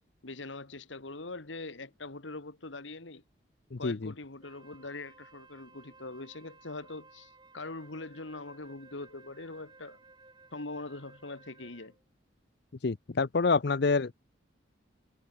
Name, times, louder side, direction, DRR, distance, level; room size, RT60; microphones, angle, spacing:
voice 1, 0.2-3.2 3.8-10.0 10.5-12.0, left 2 dB, 80° left, 2.0 m, -42 dB
voice 2, 3.7-4.1 12.8-14.1, left 4 dB, 60° left, 0.6 m, -27 dB
Wind instrument woodwind instrument, 4.4-12.0, right 3 dB, 25° right, 6.2 m, -58 dB
head